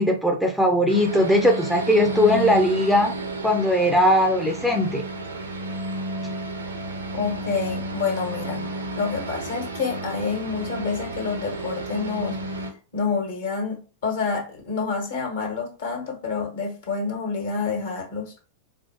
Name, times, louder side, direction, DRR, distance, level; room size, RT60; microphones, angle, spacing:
voice 1, 0.0-3.1 3.4-5.0, left 1 dB, 5° left, 0.4 m, -19 dB
sound 1, 0.9-12.7, right 2 dB, 75° right, 0.5 m, -32 dB
voice 2, 7.1-8.7 9.0-12.4 12.9-18.4, left 5 dB, 60° left, 1.2 m, -28 dB
4.3 x 2.5 x 2.7 m
figure-of-eight pair, 90°, 0 cm